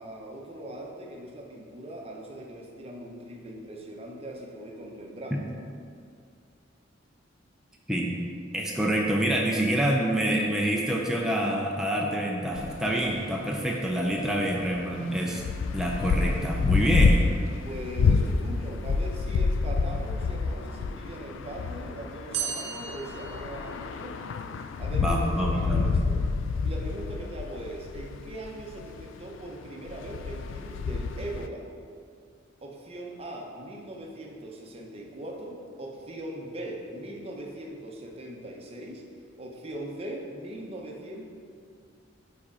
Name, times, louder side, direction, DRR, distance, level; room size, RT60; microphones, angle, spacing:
voice 1, 0.0-5.4 17.6-24.2 24.8-26.2 26.6-31.7 32.6-39.0 39.4-41.2, right 1 dB, 30° right, -1 dB, 0.7 m, -40 dB
voice 2, 8.5-15.4 15.7-17.2 25.0-26.0, right 1 dB, 5° right, -2 dB, 0.4 m, -27 dB
sound 1, 12.6-29.3 29.6-31.5, left 4 dB, 70° left, 0.3 m, -28 dB
sound 2, 22.3-24.3, right 7 dB, 60° right, 0.9 m, -35 dB
4.9 x 4.2 x 4.9 m, 2.3 s
head